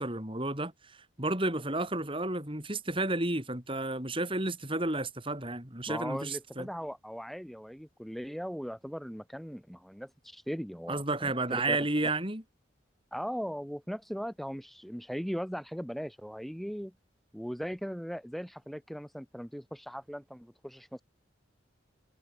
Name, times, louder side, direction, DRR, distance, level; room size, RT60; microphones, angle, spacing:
voice 1, 0.0-6.7 10.9-12.4, right 2 dB, 25° right, 5.4 m, -32 dB
voice 2, 5.9-11.8 13.1-16.9 17.3-21.0, equal, ahead, 4.0 m, -39 dB
head